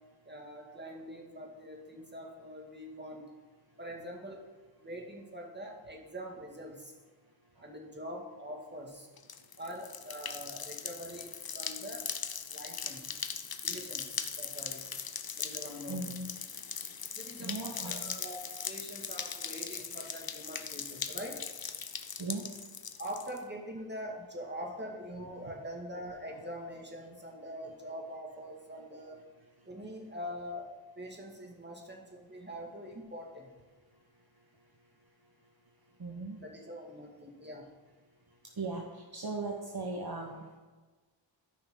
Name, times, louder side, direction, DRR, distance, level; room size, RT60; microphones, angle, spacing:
voice 1, 0.3-3.2 3.8-4.4 4.8-6.9 7.6-9.1 9.6-12.1 12.5-13.2 13.6-14.8 15.4-16.0 17.1-21.4 23.0-29.2 29.7-30.7 31.0-33.5 36.4-37.7, equal, 25° right, 0 dB, 2.0 m, -44 dB
sound 1, 9.2-23.4, left 6 dB, 50° left, 0.7 m, -40 dB
voice 2, 15.9-16.3 17.4-18.1 22.2-22.5 36.0-36.4 38.6-40.6, right 3 dB, 55° right, 0 dB, 1.1 m, -38 dB
14.0 x 5.8 x 3.7 m, 1.3 s
wide cardioid pair, 65°, 46 cm